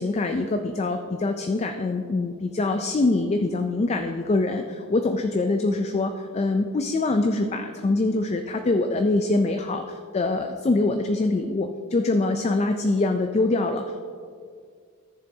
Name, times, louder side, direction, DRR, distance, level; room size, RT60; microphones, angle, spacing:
voice 1, 0.0-14.1, left 2 dB, 30° left, 6 dB, 0.3 m, -24 dB
14.0 x 7.0 x 2.7 m, 2.1 s
head